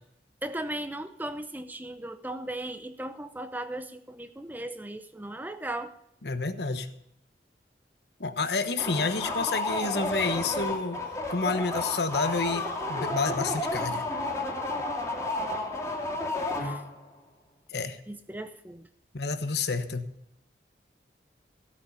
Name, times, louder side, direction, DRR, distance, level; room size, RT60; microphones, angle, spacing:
voice 1, 0.4-5.9 16.6-16.8 18.1-18.9, right 1 dB, 10° right, 10 dB, 0.7 m, -37 dB
voice 2, 6.2-6.9 8.2-11.0 11.3-14.0 17.7-18.0 19.1-20.0, left 4 dB, 70° left, 10 dB, 1.1 m, -29 dB
sound 1, 8.8-17.1, left 2 dB, 15° left, 2.5 m, -31 dB
16.5 x 8.7 x 5.6 m, 0.76 s
head